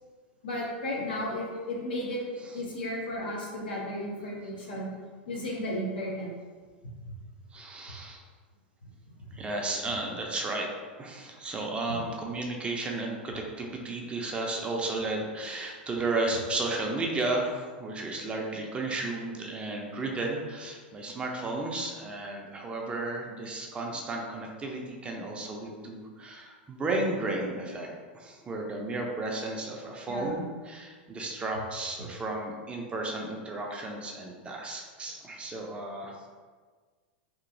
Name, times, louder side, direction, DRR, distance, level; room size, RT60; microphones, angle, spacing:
voice 1, 0.4-2.2 2.5-4.9 5.3-6.3 30.1-30.4, left 1 dB, 75° left, -3 dB, 0.9 m, -34 dB
voice 2, 7.5-8.2 9.3-10.7 11.0-27.9 28.1-36.2, right 2 dB, 20° right, 0 dB, 0.5 m, -33 dB
3.0 x 2.6 x 2.6 m, 1.5 s
hypercardioid pair, 100°, 6 cm